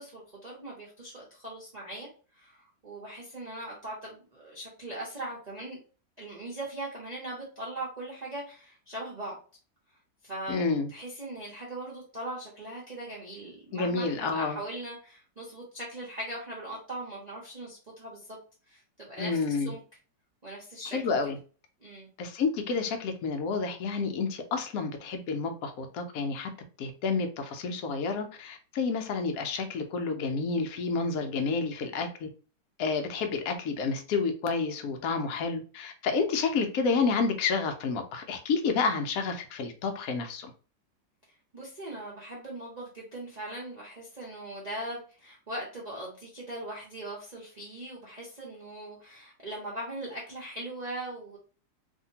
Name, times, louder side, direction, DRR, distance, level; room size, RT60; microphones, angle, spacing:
voice 1, 0.0-5.8 6.2-9.4 10.2-10.6 10.9-18.4 18.7-19.4 19.6-19.8 20.4-21.0 21.8-22.1 41.5-51.4, right 1 dB, 40° right, -6 dB, 0.6 m, -40 dB
voice 2, 10.5-10.9 13.7-14.6 19.2-19.7 20.9-21.4 22.2-26.5 26.8-32.3 32.8-40.5, left 4 dB, 70° left, 5 dB, 0.9 m, -29 dB
2.8 x 2.6 x 2.7 m, 0.37 s
omnidirectional pair, 1.9 m